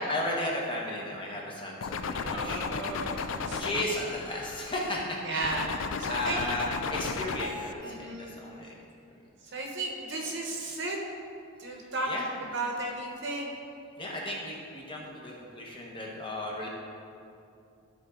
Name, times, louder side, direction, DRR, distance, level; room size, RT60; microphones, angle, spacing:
voice 1, 0.0-2.6 3.5-5.6 6.1-8.7 12.0-12.2 14.0-16.7, left 1 dB, 20° left, -3 dB, 1.1 m, -34 dB
sound 1, 1.8-5.0 5.4-7.7, left 5 dB, 60° left, 0.4 m, -34 dB
voice 2, 2.3-3.8 5.2-6.4 7.8-8.4 9.4-11.0 11.6-12.1 12.4-13.6, right 2 dB, 55° right, 0 dB, 1.0 m, -35 dB
13.0 x 4.3 x 3.7 m, 2.6 s
head